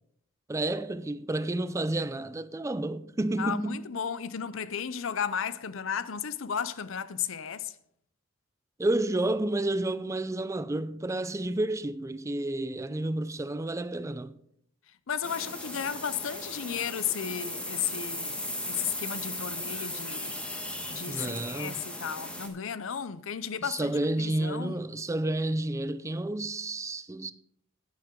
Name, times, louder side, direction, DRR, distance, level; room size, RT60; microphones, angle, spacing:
voice 1, 0.5-3.9 8.8-14.3 21.1-21.8 23.6-27.3, right 1 dB, 15° right, 0.4 m, -30 dB
voice 2, 3.4-7.7 15.1-20.4 20.9-23.9 24.2-24.8, left 8 dB, 70° left, 0.6 m, -34 dB
sound 1, 15.2-22.5, left 1 dB, 5° left, 1.3 m, -37 dB
11.5 x 9.5 x 3.8 m
head